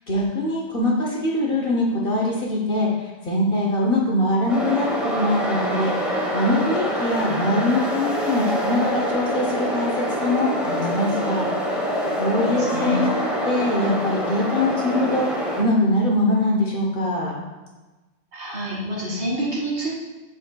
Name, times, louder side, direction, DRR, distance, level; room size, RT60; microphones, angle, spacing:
voice 1, 0.1-11.9 12.2-13.1 13.5-15.3 15.6-17.3, left 1 dB, 55° left, -2 dB, 1.0 m, -23 dB
sound 1, 4.5-15.6, equal, ahead, 1.0 m, -25 dB
voice 2, 12.3-13.0 18.3-19.9, right 1 dB, 50° right, -7 dB, 1.9 m, -28 dB
7.3 x 5.9 x 2.2 m, 1.2 s
omnidirectional pair, 1.2 m